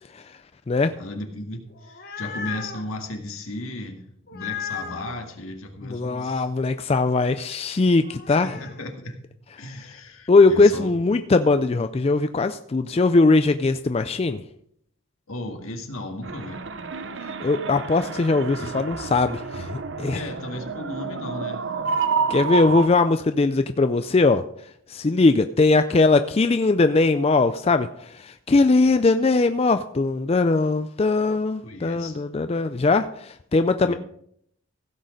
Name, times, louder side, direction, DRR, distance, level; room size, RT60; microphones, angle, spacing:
voice 1, 1.0-4.0 4.3-6.5 8.3-9.2 9.6-10.9 15.3-16.6 18.6-18.9 20.1-21.7 31.6-32.2 33.8-33.9, left 1 dB, 80° left, 3 dB, 2.0 m, -35 dB
sound 1, 1.7-2.9 4.3-5.2 8.0-8.8, left 7 dB, 45° left, 1.2 m, -35 dB
voice 2, 5.9-8.6 10.3-14.4 17.4-20.2 22.3-24.4 24.9-33.9, left 3 dB, 30° left, 9 dB, 0.3 m, -20 dB
sound 2, 16.2-22.9, right 5 dB, 55° right, 0.7 m, -29 dB
16.0 x 6.4 x 5.2 m, 0.69 s
head